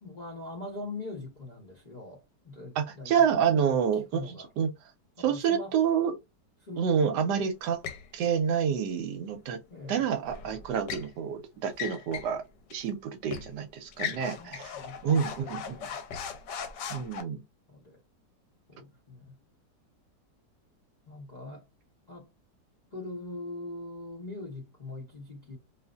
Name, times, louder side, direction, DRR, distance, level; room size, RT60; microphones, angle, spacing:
voice 1, 0.0-3.8 4.1-4.5 5.2-5.8 6.6-7.4 9.7-10.1 14.0-16.0 16.9-17.1 17.7-18.0 18.7-19.4 21.1-21.7 22.1-22.3 22.9-25.6, left 2 dB, 40° left, 0.6 m, -42 dB
voice 2, 2.8-4.2 4.6-4.7 5.2-6.1 6.8-7.8 8.1-9.6 9.9-12.4 12.7-14.7 15.0-15.9 16.9-17.4, right 7 dB, 80° right, 1.1 m, -28 dB
sound 1, 7.8-8.1 10.3-11.1 11.7-12.4 12.7-12.8 13.3-13.5 13.9-17.2, left 7 dB, 80° left, 1.2 m, -38 dB
2.8 x 2.5 x 2.3 m
omnidirectional pair, 1.9 m